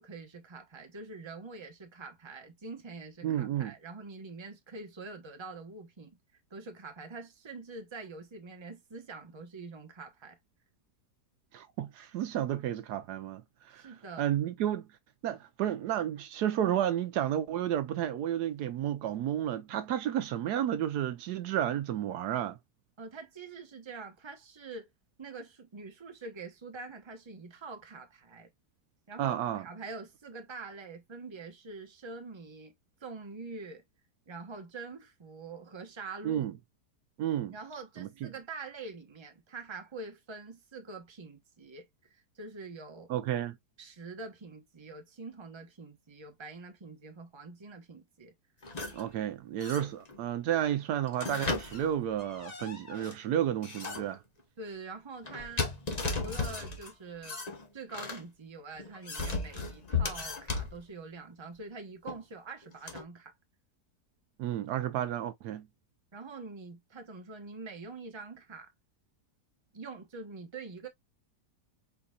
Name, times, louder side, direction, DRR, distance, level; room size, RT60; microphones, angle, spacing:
voice 1, 0.0-6.2 6.5-10.4 13.7-14.3 23.0-24.9 25.2-28.5 29.1-32.7 33.0-33.8 34.3-36.5 37.5-43.1 43.8-48.3 54.6-55.7 56.1-57.4 57.7-63.3 66.1-68.7 69.7-70.9, right 3 dB, 20° right, 0.9 m, -45 dB
voice 2, 3.2-3.7 11.5-13.8 14.2-14.9 15.2-22.6 29.2-29.7 36.2-36.5 37.2-37.5 38.0-38.3 43.1-43.6 48.9-54.2 64.4-65.7, right 11 dB, 75° right, 1.1 m, -31 dB
sound 1, 48.6-49.1 49.6-50.2 51.1-53.1 53.6-54.2 55.2-56.9 57.2-58.2 58.8-60.8 62.1-62.2 62.9-63.0, left 4 dB, 30° left, 0.9 m, -35 dB
4.6 x 4.0 x 2.3 m
omnidirectional pair, 1.8 m